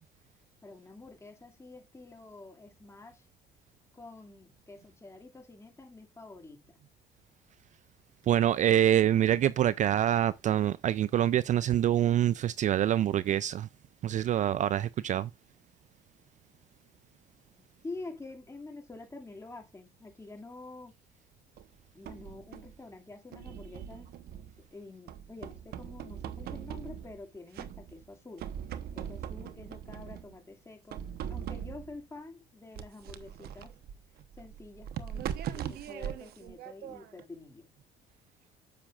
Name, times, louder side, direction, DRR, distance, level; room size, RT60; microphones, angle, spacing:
voice 1, 0.6-3.3 3.9-6.8 17.8-20.9 21.9-24.1 24.7-28.5 28.9-31.0 31.3-33.8 34.4-37.7, left 3 dB, 15° left, 2.3 m, -47 dB
voice 2, 8.3-13.7 14.0-15.3, right 11 dB, 45° right, 0.4 m, -25 dB
sound 1, 21.6-22.8 23.3-24.7 25.1-27.2 27.5-28.1 28.4-30.3 30.9-32.0 32.7-37.2, right 9 dB, 70° right, 1.0 m, -41 dB
9.9 x 7.2 x 2.4 m
cardioid pair, 110°, 17 cm